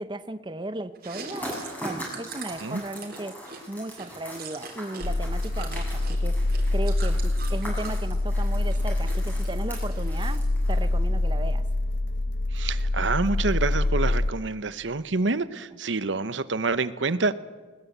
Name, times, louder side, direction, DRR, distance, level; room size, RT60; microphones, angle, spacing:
voice 1, 0.0-3.4 3.7-11.7, right 2 dB, 25° right, 11 dB, 0.7 m, -36 dB
Chewing mastication, 0.9-5.1 5.3-8.0 8.4-9.2 9.4-10.4, right 5 dB, 50° right, 3.6 m, -42 dB
sound 1, 1.3-11.0, equal, 10° left, 7.1 m, -41 dB
sound 2, 5.0-14.3, left 2 dB, 80° left, 0.8 m, -25 dB
voice 2, 12.5-17.3, right 3 dB, 75° right, 14 dB, 0.9 m, -27 dB
20.0 x 20.0 x 8.1 m, 1.3 s
head